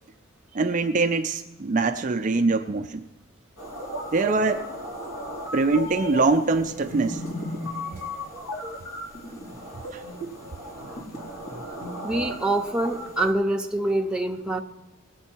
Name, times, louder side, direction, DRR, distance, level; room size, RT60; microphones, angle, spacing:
voice 1, 0.5-3.0 4.1-4.6 5.5-7.2 7.8-8.1 9.9-10.0 10.8-11.3, right 3 dB, 35° right, 6 dB, 0.4 m, -24 dB
sound 1, 3.6-13.3, equal, 70° left, 3.4 m, -35 dB
voice 2, 12.0-14.6, right 1 dB, 5° right, 2 dB, 0.7 m, -25 dB
20.0 x 8.3 x 4.6 m, 1.1 s
head